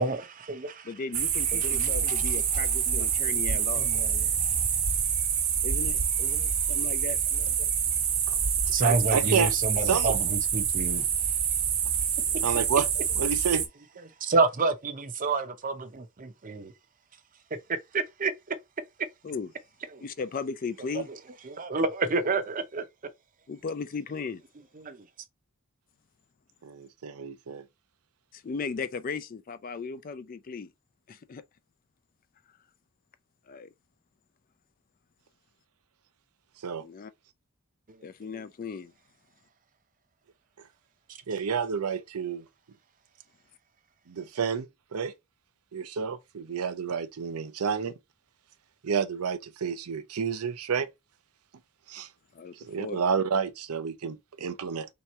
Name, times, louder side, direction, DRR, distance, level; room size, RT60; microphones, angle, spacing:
voice 1, 0.0-0.9 1.5-4.7 6.2-6.5 7.6-7.7 8.7-11.0 12.7-12.8 14.2-16.7 17.9-18.3 19.9-20.0 20.9-21.0 21.4-22.8 24.8-25.1 37.9-38.4 41.5-41.6, right 3 dB, 40° right, 0.6 m, -30 dB
voice 2, 0.8-3.9 5.6-6.0 6.7-7.2 19.2-19.5 20.0-21.1 23.5-24.4 28.3-30.7 31.1-31.4 33.5-33.7 36.8-37.1 38.0-38.9 52.3-53.0, left 5 dB, 40° left, 0.4 m, -36 dB
sound 1, 1.1-13.7, right 7 dB, 70° right, 1.0 m, -26 dB
voice 3, 8.8-9.5 9.9-10.1 12.4-12.9 13.2-13.6 26.6-27.6 36.6-36.8 41.3-42.4 44.1-45.1 45.7-47.9 48.8-50.9 51.9-52.1 52.7-54.9, right 6 dB, 85° right, 0.6 m, -29 dB
3.4 x 3.0 x 4.2 m
head